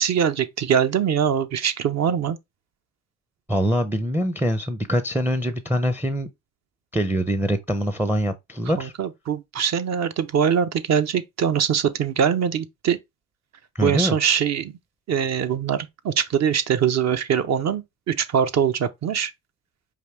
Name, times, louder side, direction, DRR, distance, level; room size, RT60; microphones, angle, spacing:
voice 1, 0.0-2.4 8.8-13.0 13.8-14.7 15.1-19.3, right 8 dB, 45° right, 0.6 m, -22 dB
voice 2, 3.5-6.3 6.9-8.9 13.7-14.2, equal, 5° right, 0.5 m, -24 dB
4.9 x 2.6 x 3.3 m
supercardioid pair, 75°, 40 cm